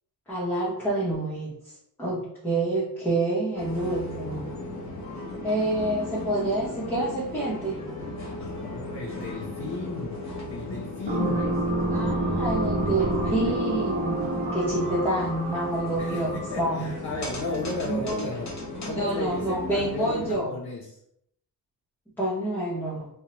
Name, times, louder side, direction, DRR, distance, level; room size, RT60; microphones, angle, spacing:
voice 1, 0.3-1.5 2.0-4.5 5.4-7.8 11.9-14.2 14.5-16.3 16.6-16.9 17.8-18.3 18.9-20.5 22.2-23.1, right 1 dB, 5° left, -9 dB, 0.7 m, -28 dB
sound 1, 3.6-20.4, left 2 dB, 45° left, 0.9 m, -36 dB
voice 2, 8.3-10.2 10.5-11.4 16.0-18.5 18.8-21.0, left 3 dB, 70° left, -1 dB, 0.7 m, -34 dB
sound 2, 11.1-16.7, right 1 dB, 25° right, 0.9 m, -28 dB
2.6 x 2.1 x 2.9 m, 0.74 s
cardioid pair, 105°, 38 cm